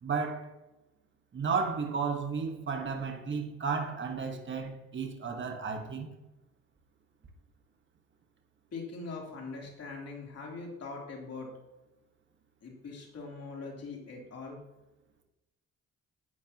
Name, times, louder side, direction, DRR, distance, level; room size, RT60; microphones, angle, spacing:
voice 1, 0.0-0.5 1.3-6.1, right 5 dB, 40° right, 1.5 m, -33 dB
voice 2, 8.7-11.5 12.6-14.6, left 4 dB, 55° left, 3.3 m, -42 dB
11.5 x 8.7 x 3.0 m
cardioid pair, 90°, 30 cm